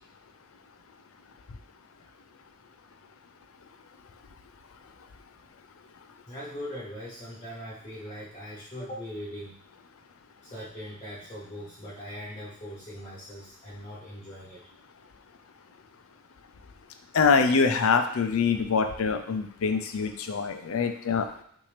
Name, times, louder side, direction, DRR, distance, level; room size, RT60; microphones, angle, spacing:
voice 1, 6.3-9.6 10.4-14.6, equal, 25° left, -7 dB, 0.9 m, -40 dB
voice 2, 17.1-21.3, left 5 dB, 80° left, 8 dB, 0.5 m, -24 dB
5.7 x 2.7 x 3.3 m, 0.66 s
head